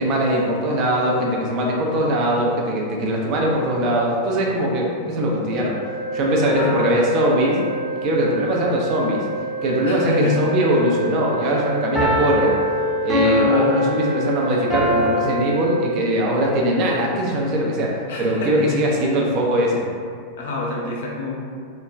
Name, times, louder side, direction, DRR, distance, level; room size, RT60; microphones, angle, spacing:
voice 1, 0.0-5.7 6.1-7.6 8.0-9.2 9.6-12.5 13.0-19.9, right 1 dB, 40° right, -2 dB, 0.5 m, -21 dB
Organ, 5.5-16.5, right 2 dB, 65° right, 0.9 m, -29 dB
voice 2, 6.4-7.0 9.8-10.5 13.2-13.7 18.1-18.8 20.4-21.3, left 4 dB, 55° left, -3 dB, 0.5 m, -27 dB
sound 1, 6.5-7.5 11.9-15.1, left 1 dB, ahead, 0.7 m, -22 dB
3.1 x 2.1 x 2.4 m, 2.2 s
figure-of-eight pair, 90°, 0 cm